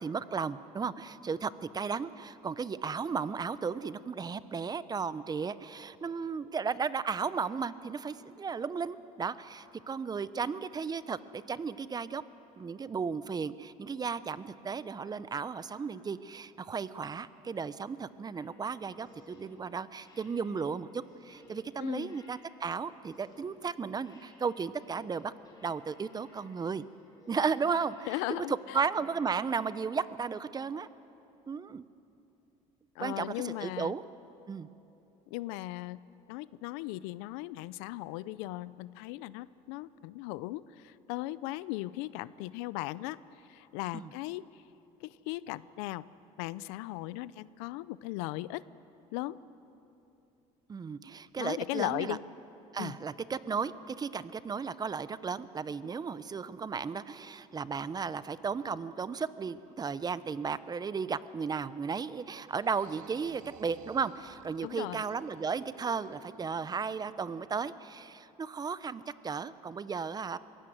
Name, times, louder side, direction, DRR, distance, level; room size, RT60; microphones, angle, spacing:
voice 1, 0.0-12.2 12.6-25.3 25.6-26.9 27.3-30.9 31.5-31.8 33.0-34.0 34.5-34.7 43.9-44.1 50.7-52.2 52.7-70.4, right 5 dB, 30° right, 16 dB, 0.7 m, -35 dB
sound 1, 18.3-29.4, left 2 dB, 30° left, 4.3 m, -60 dB
voice 2, 21.8-22.2 28.1-28.8 33.0-33.9 35.3-36.0 36.3-43.2 43.5-44.6 45.0-46.0 46.4-48.6 49.1-49.3 51.4-52.2 52.8-53.0 64.6-65.0, left 17 dB, 90° left, 19 dB, 0.5 m, -37 dB
sound 2, 62.4-67.2, right 9 dB, 70° right, 1.1 m, -55 dB
22.5 x 16.5 x 7.9 m, 2.9 s
supercardioid pair, 90°, 14 cm